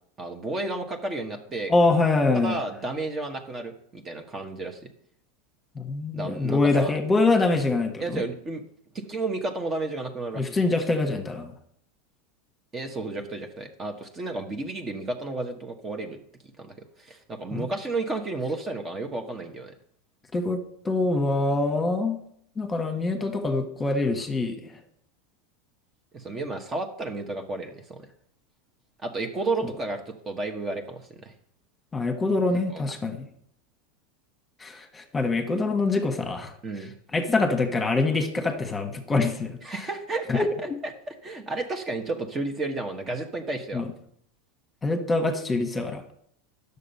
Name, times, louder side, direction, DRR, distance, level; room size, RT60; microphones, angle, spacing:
voice 1, 0.2-1.7 2.3-4.8 6.1-6.9 8.0-8.6 8.9-10.5 12.7-16.2 16.6-19.7 26.1-28.1 29.0-31.3 32.7-32.9 36.6-36.9 39.6-40.5 41.1-43.8, right 2 dB, 25° right, 5 dB, 1.2 m, -32 dB
voice 2, 1.7-2.6 5.7-8.2 10.4-11.5 17.5-17.7 20.3-22.2 22.6-24.7 31.9-33.2 34.6-36.5 37.1-39.6 40.3-40.7 43.7-43.9 44.8-46.0, left 3 dB, 15° left, 5 dB, 1.4 m, -24 dB
9.8 x 6.9 x 5.5 m, 0.67 s
supercardioid pair, 115°, 0 cm